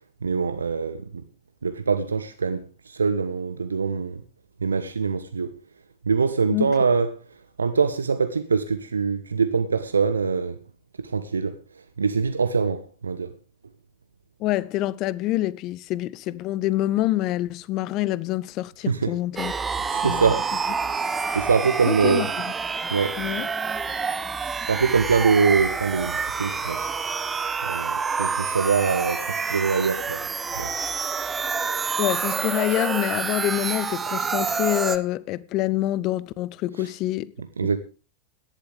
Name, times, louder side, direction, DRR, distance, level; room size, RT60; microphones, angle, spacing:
voice 1, 0.2-1.2 1.6-4.2 4.6-5.5 6.1-7.2 7.6-10.6 11.0-11.6 12.0-13.3 18.9-19.1 19.9-20.6 21.3-22.3 22.9-23.2 24.7-26.9 27.6-30.3 30.6-30.7 36.8-36.9 37.4-37.8, right 5 dB, 75° right, 0.8 m, -24 dB
voice 2, 14.4-19.5 20.0-20.3 21.9-22.5 23.2-23.5 32.0-37.3, left 15 dB, 40° left, 0.7 m, -26 dB
sound 1, 19.4-35.0, right 5 dB, 15° right, 1.3 m, -28 dB
17.5 x 11.5 x 3.4 m
figure-of-eight pair, 90°, 0 cm